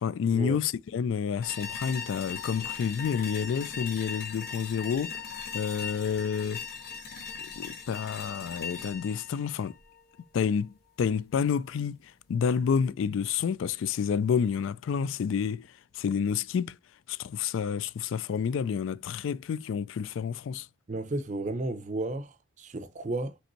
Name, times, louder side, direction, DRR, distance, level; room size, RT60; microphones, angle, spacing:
voice 1, 0.0-5.2 5.5-6.6 7.6-9.7 10.3-10.7 11.0-15.7 15.9-16.8 17.1-20.7, left 7 dB, 70° left, 0.3 m, -29 dB
sound 1, 1.4-10.5, left 6 dB, 45° left, 1.3 m, -39 dB
voice 2, 20.9-23.4, right 2 dB, 35° right, 0.5 m, -33 dB
5.2 x 3.4 x 2.9 m
head